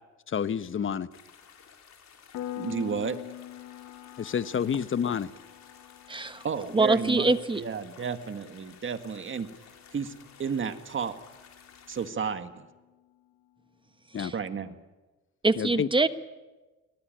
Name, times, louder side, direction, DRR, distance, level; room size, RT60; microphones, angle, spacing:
voice 1, 0.3-1.1 4.2-5.3 14.1-14.3 15.5-15.9, left 7 dB, 40° left, 14 dB, 1.0 m, -29 dB
sound 1, 1.1-12.1, left 7 dB, 65° left, 4.2 m, -55 dB
Piano, 2.3-12.7, left 13 dB, 85° left, 1.6 m, -46 dB
voice 2, 2.5-3.2 6.4-9.5 9.9-10.1 10.4-11.1 11.9-12.7 14.3-14.8, right 6 dB, 40° right, 9 dB, 1.8 m, -32 dB
voice 3, 6.1-6.4 6.7-7.6 14.2-14.3 15.4-16.1, right 3 dB, 15° right, 11 dB, 1.2 m, -24 dB
23.0 x 19.0 x 9.1 m, 1.2 s
cardioid pair, 90°, 30 cm